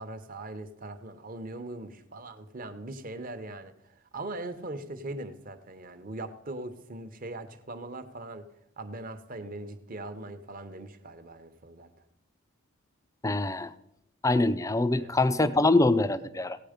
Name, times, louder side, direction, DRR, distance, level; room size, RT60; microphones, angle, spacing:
voice 1, 0.0-8.5 8.8-11.9 14.9-15.2, right 2 dB, 40° right, 9 dB, 0.9 m, -40 dB
voice 2, 13.2-13.7 14.2-16.6, left 2 dB, 15° left, 13 dB, 0.4 m, -24 dB
16.0 x 9.0 x 5.1 m, 0.82 s
head